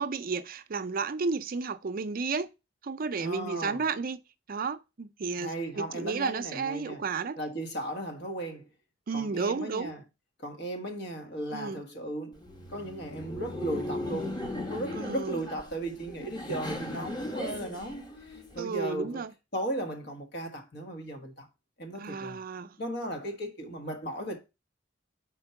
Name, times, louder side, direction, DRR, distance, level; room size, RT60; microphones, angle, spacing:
voice 1, 0.0-2.5 2.8-4.2 4.5-5.5 5.8-7.4 9.1-9.9 11.5-11.8 15.0-15.4 18.6-19.3 22.0-22.7, right 4 dB, 50° right, 0.5 m, -32 dB
voice 2, 3.2-3.8 5.4-7.1 7.4-8.7 9.1-10.0 10.4-12.4 12.7-14.4 14.7-19.2 19.5-21.5 21.8-22.4 22.8-24.4, right 1 dB, 60° left, 1.5 m, -36 dB
Laughter, 12.3-18.6, left 1 dB, 25° left, 1.1 m, -37 dB
4.5 x 4.4 x 5.7 m
head